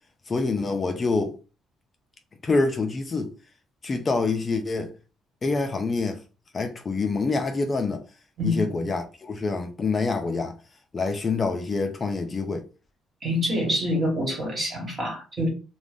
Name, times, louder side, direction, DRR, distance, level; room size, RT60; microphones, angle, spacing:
voice 1, 0.3-1.4 2.4-3.3 3.8-4.9 5.4-6.2 6.5-8.0 8.4-10.5 10.9-12.6, left 3 dB, 25° left, 0.3 m, -26 dB
voice 2, 13.2-15.5, equal, 35° right, 1.1 m, -26 dB
2.4 x 2.1 x 3.3 m
cardioid pair, 135°, 0 cm